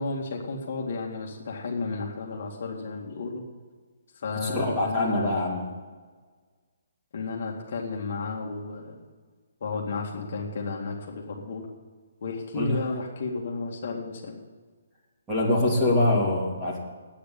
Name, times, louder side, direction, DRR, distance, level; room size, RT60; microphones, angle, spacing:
voice 1, 0.0-3.4 4.1-5.3 7.1-9.1 9.6-11.7 12.2-14.4, left 3 dB, 45° left, -1 dB, 2.0 m, -33 dB
voice 2, 4.4-5.7 12.5-12.8 15.3-16.8, left 2 dB, 10° right, -6 dB, 2.9 m, -24 dB
10.0 x 8.9 x 8.5 m, 1.5 s
hypercardioid pair, 170°, 0 cm